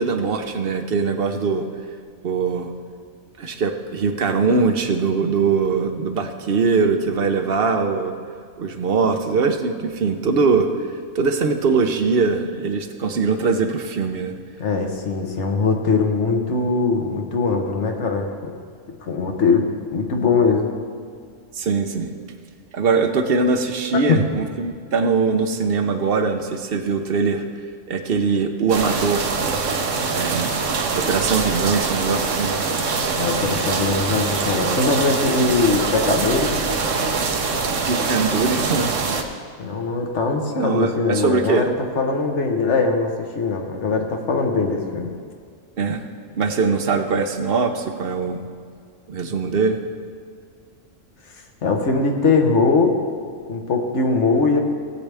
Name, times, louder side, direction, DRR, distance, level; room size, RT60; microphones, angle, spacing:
voice 1, 0.0-1.6 2.2-2.7 3.4-8.1 8.6-10.9 11.1-14.3 21.5-22.1 22.7-27.4 27.9-29.4 30.1-30.5 30.9-32.6 37.8-38.9 40.6-41.7 45.8-46.1 46.4-48.4 49.1-49.8, right 4 dB, 50° right, 6 dB, 0.8 m, -21 dB
voice 2, 14.6-18.5 19.0-20.7 23.9-24.2 33.1-36.6 39.6-45.1 51.6-53.0 53.5-54.6, left 4 dB, 60° left, 3 dB, 1.4 m, -21 dB
sound 1, 28.7-39.2, right 4 dB, 70° right, 1.2 m, -23 dB
17.0 x 8.5 x 3.4 m, 2.1 s
omnidirectional pair, 1.4 m